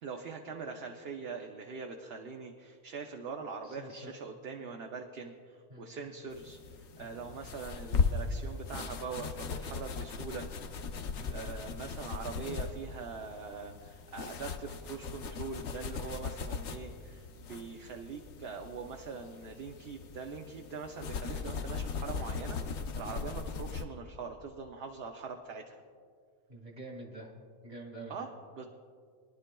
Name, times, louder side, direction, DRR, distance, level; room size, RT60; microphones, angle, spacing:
voice 1, 0.0-10.5 11.0-25.8 28.1-28.7, right 5 dB, 55° right, 2 dB, 0.8 m, -43 dB
voice 2, 3.6-4.1 5.7-5.9 7.0-7.2 11.2-11.4 23.1-23.2 26.5-27.3 27.6-28.3, right 1 dB, 35° right, 0 dB, 1.9 m, -47 dB
sound 1, 6.3-23.8, left 5 dB, 65° left, 0.9 m, -38 dB
23.5 x 11.0 x 2.3 m, 2.1 s
omnidirectional pair, 1.4 m